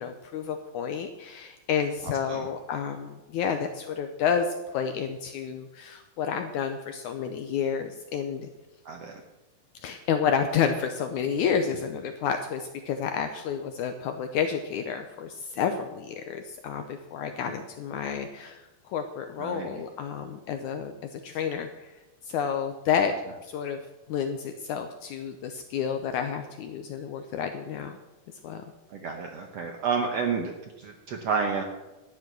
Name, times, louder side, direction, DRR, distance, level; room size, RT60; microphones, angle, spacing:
voice 1, 0.0-8.5 9.8-21.7 22.3-23.1 23.4-23.8 24.1-27.9 28.4-28.6, left 7 dB, 75° left, 6 dB, 1.8 m, -30 dB
voice 2, 2.0-2.5 8.8-9.2 17.4-17.5 19.4-19.7 28.9-31.6, right 5 dB, 70° right, 3 dB, 1.5 m, -30 dB
12.5 x 9.4 x 6.1 m, 1.1 s
omnidirectional pair, 4.2 m